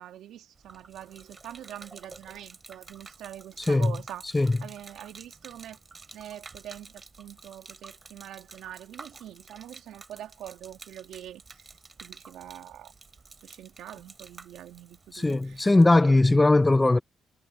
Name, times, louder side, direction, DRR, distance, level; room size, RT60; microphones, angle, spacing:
voice 1, 0.0-5.8 6.1-12.9 13.3-16.5, right 11 dB, 80° right, 2.4 m, -44 dB
Gurgling / Liquid, 0.5-16.0, right 4 dB, 30° right, 6.8 m, -50 dB
voice 2, 15.1-17.0, left 2 dB, 15° left, 0.8 m, -19 dB
cardioid pair, 90°, 0 cm